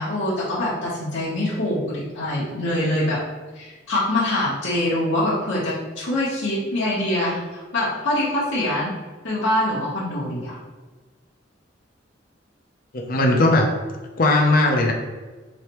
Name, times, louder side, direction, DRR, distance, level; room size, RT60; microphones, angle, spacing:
voice 1, 0.0-3.2 3.5-8.9 9.2-10.6, left 1 dB, 70° left, -8 dB, 1.0 m, -24 dB
voice 2, 12.9-13.7 14.2-14.9, left 2 dB, 50° left, 2 dB, 0.5 m, -18 dB
4.2 x 3.2 x 2.9 m, 1.3 s
head